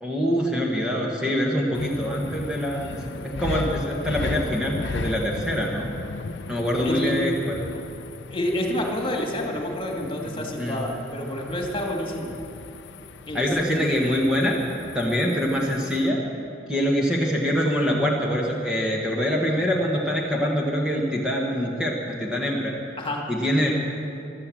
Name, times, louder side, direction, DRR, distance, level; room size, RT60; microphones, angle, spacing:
voice 1, 0.0-5.9 6.5-7.7 10.3-10.8 13.3-14.6 14.9-16.2 16.7-22.7 23.3-23.7, equal, 5° right, -3 dB, 1.4 m, -24 dB
sound 1, 1.7-16.1, left 3 dB, 65° left, 0.6 m, -36 dB
voice 2, 6.8-7.1 8.3-12.3 13.3-13.5 13.8-14.3 23.0-23.2, left 1 dB, 30° left, 0 dB, 2.3 m, -29 dB
15.5 x 12.5 x 7.6 m, 2.8 s
head